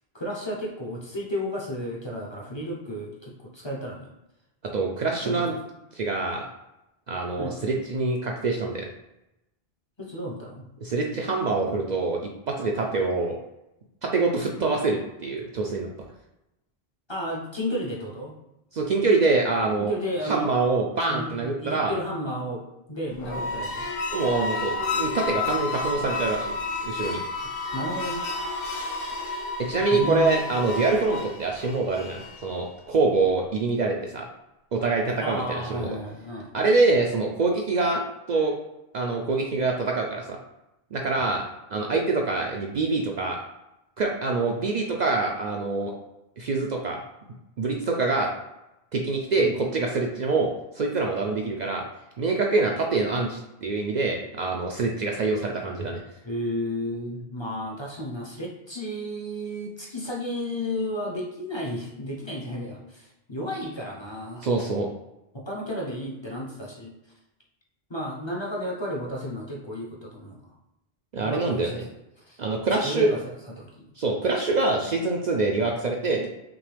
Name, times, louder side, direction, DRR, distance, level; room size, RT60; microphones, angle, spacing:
voice 1, 0.1-4.1 5.2-5.4 7.4-7.5 10.0-10.7 17.1-18.3 19.8-20.5 21.1-23.9 27.4-28.3 29.1-29.2 29.9-30.4 35.2-36.5 49.4-49.5 56.2-64.5 65.3-66.9 67.9-70.5 71.2-71.7 72.2-72.4 72.8-73.9, equal, 30° left, -3 dB, 0.7 m, -33 dB
voice 2, 4.7-5.5 5.9-6.5 7.1-8.9 10.8-12.2 12.5-13.4 14.0-15.9 18.7-19.9 20.2-21.9 24.1-26.5 26.8-27.2 29.6-34.3 34.7-35.9 36.5-38.0 38.3-38.5 38.9-40.4 40.9-41.4 41.7-43.4 44.0-45.9 46.4-47.0 47.6-48.3 48.9-51.8 52.2-56.0 64.4-64.9 71.1-71.8 72.4-73.1 74.0-76.3, right 3 dB, 55° right, 0 dB, 0.5 m, -25 dB
sound 1, 23.1-32.5, left 3 dB, 65° left, 0.8 m, -31 dB
5.9 x 2.2 x 3.3 m, 0.92 s
omnidirectional pair, 1.0 m